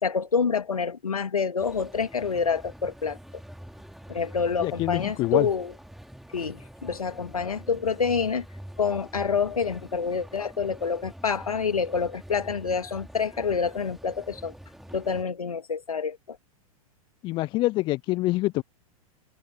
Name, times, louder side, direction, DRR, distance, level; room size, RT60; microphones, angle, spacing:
voice 1, 0.0-3.2 4.1-5.7 6.3-8.4 8.8-14.5 14.9-16.4, left 5 dB, 75° left, 2.4 m, -27 dB
sound 1, 1.6-15.2, equal, ahead, 2.8 m, -46 dB
voice 2, 4.6-5.5 17.2-18.6, left 19 dB, 25° left, 0.4 m, -26 dB
open air
figure-of-eight pair, 95°, 19 cm